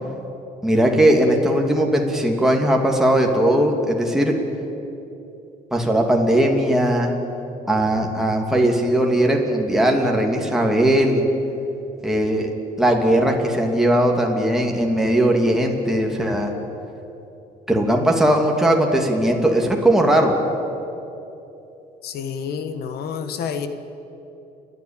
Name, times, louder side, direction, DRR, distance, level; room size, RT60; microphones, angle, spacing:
voice 1, 0.6-4.3 5.7-7.1 7.7-11.3 12.0-12.5 12.8-16.5 17.7-20.3, right 1 dB, 5° right, 0 dB, 2.6 m, -18 dB
voice 2, 22.0-23.7, left 7 dB, 70° left, 9 dB, 1.5 m, -29 dB
29.5 x 11.0 x 8.9 m, 2.9 s
cardioid pair, 110°, 17 cm